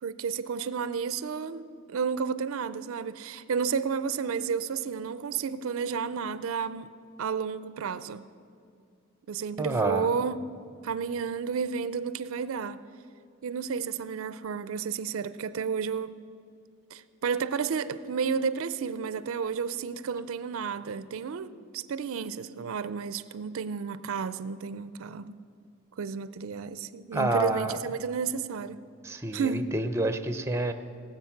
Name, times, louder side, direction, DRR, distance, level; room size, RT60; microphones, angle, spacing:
voice 1, 0.0-6.9 7.2-8.2 9.3-10.4 10.8-12.8 13.4-16.1 16.9-25.4 26.0-28.8 29.3-29.7, right 6 dB, 65° right, 0.4 m, -32 dB
voice 2, 9.6-10.1 27.1-27.8 29.0-30.7, right 2 dB, 10° right, 0.5 m, -28 dB
18.0 x 7.7 x 5.8 m
head